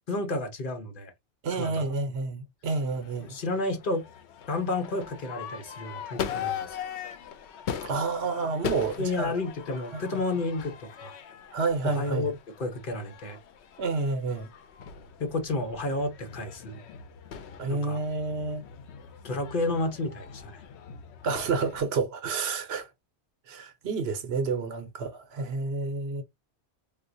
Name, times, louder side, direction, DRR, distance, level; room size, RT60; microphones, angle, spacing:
voice 1, 0.1-1.1 1.5-1.9 3.2-4.0 4.5-6.8 9.0-11.1 11.8-13.4 15.2-16.8 17.7-18.0 19.2-20.6, left 2 dB, 50° left, 1.0 m, -31 dB
voice 2, 1.4-3.4 7.8-9.4 9.9-10.0 11.5-12.3 13.8-14.5 17.6-18.6 21.2-22.9 23.5-26.2, right 4 dB, 70° right, 0.9 m, -29 dB
Crowd / Fireworks, 2.8-21.8, left 8 dB, 80° left, 0.9 m, -40 dB
3.6 x 2.4 x 2.6 m
omnidirectional pair, 1.1 m